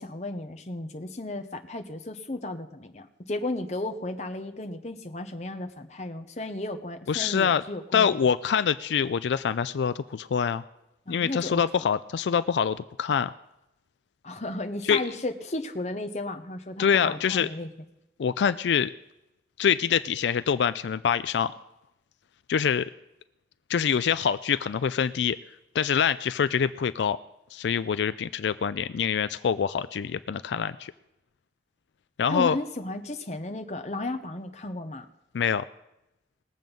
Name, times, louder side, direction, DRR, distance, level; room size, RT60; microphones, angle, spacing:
voice 1, 0.0-8.2 11.1-11.6 14.2-17.7 32.3-35.1, left 2 dB, 40° left, 8 dB, 0.9 m, -34 dB
voice 2, 7.1-7.6 7.9-10.6 11.1-13.3 14.8-15.0 16.8-17.5 18.2-18.9 19.6-21.5 22.5-22.9 23.7-25.4 25.7-27.2 27.5-30.9 32.2-32.6 35.3-35.6, left 7 dB, 90° left, 14 dB, 0.4 m, -25 dB
20.0 x 7.6 x 5.3 m, 0.91 s
head